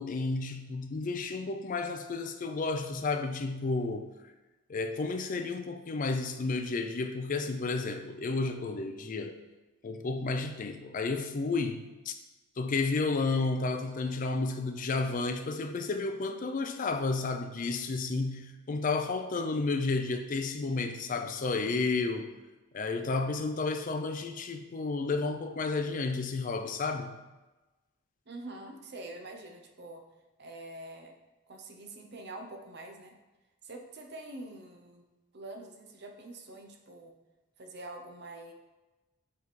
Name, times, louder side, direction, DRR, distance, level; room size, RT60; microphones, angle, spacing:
voice 1, 0.0-4.1 4.7-9.4 9.8-12.1 12.6-22.3 22.7-27.2, left 3 dB, 35° left, 0.4 m, -32 dB
voice 2, 28.3-30.0 30.4-31.1 31.5-33.1 33.6-35.1 35.3-37.2 37.6-38.5, right 2 dB, 50° right, 0.7 m, -45 dB
5.1 x 4.6 x 4.1 m
head